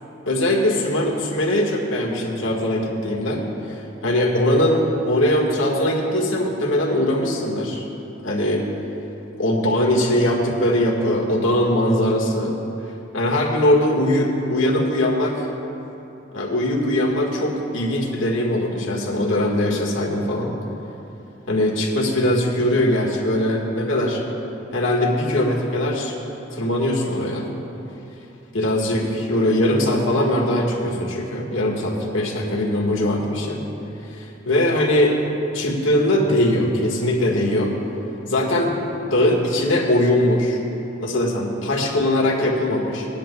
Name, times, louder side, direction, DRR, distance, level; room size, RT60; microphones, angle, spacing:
voice 1, 0.3-3.5 4.0-7.8 8.2-8.6 9.4-12.5 13.1-15.5 16.3-20.6 21.5-24.2 24.7-26.1 26.5-27.4 28.5-33.6 34.1-35.2 35.5-37.7 38.3-38.7 39.1-40.6 41.0-43.1, left 1 dB, 90° left, -1 dB, 1.7 m, -21 dB
19.0 x 10.5 x 2.3 m, 3.0 s
head